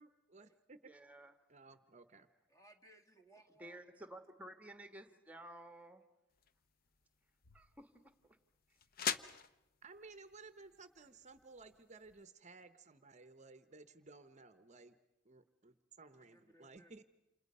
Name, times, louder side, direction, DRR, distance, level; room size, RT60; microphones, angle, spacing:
voice 1, 0.0-0.9 1.5-2.3 9.8-15.0 15.2-17.0, right 3 dB, 35° right, 11 dB, 0.8 m, -57 dB
voice 2, 0.8-1.3 3.6-6.0 7.5-8.1, right 1 dB, 5° right, 8 dB, 1.4 m, -53 dB
voice 3, 2.5-4.1 16.1-16.9, right 1 dB, 20° left, 6 dB, 1.9 m, -65 dB
sound 1, 6.3-12.2, left 7 dB, 50° left, 0.8 m, -46 dB
29.5 x 28.0 x 5.4 m, 0.96 s
head